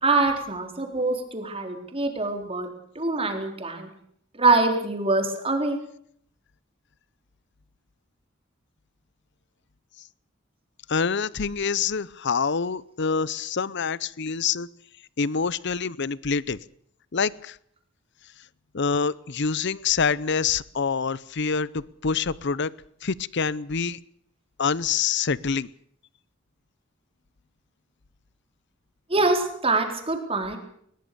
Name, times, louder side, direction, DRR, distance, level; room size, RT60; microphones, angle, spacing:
voice 1, 0.0-2.7 3.0-3.9 4.4-5.8 29.1-30.6, right 3 dB, 30° right, 4 dB, 4.1 m, -24 dB
voice 2, 10.9-14.7 15.2-16.6 17.1-17.6 18.7-22.7 23.0-24.0 24.6-25.7, left 5 dB, 60° left, 21 dB, 0.8 m, -26 dB
21.0 x 20.5 x 6.9 m, 0.66 s
head